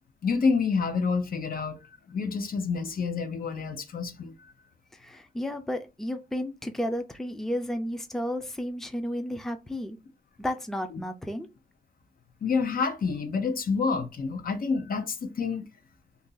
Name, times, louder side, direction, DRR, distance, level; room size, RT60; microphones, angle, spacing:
voice 1, 0.2-1.8 2.1-4.3 12.4-15.7, left 5 dB, 65° left, 0.7 m, -28 dB
voice 2, 5.0-10.0 10.4-11.5, equal, 5° left, 0.5 m, -32 dB
2.8 x 2.6 x 3.8 m
wide cardioid pair, 105°, 16 cm